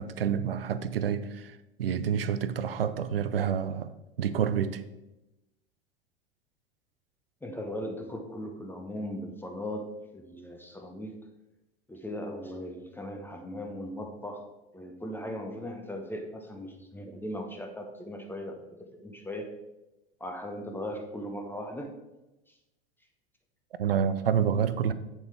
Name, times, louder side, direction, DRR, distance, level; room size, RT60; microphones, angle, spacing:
voice 1, 0.0-3.9 4.2-4.8 23.8-24.9, right 8 dB, 70° right, 13 dB, 0.6 m, -28 dB
voice 2, 7.4-11.2 11.9-14.5 14.7-19.5 20.2-21.9, equal, 5° left, 3 dB, 0.9 m, -38 dB
8.1 x 7.3 x 3.4 m, 0.99 s
figure-of-eight pair, 80°, 30 cm